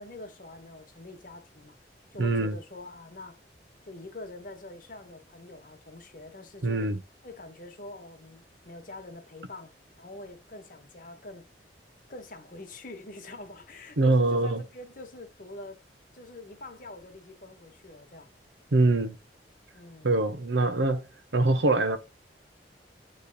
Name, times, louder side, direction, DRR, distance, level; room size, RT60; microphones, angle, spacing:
voice 1, 0.0-1.8 2.1-3.4 3.8-6.9 7.2-11.5 12.1-15.8 16.1-18.3 19.7-20.1, left 2 dB, 50° left, 1.3 m, -45 dB
voice 2, 2.2-2.5 6.6-7.0 14.0-14.6 18.7-19.2 20.0-21.1 21.3-22.0, right 2 dB, 80° right, 0.8 m, -23 dB
8.5 x 3.3 x 4.0 m
head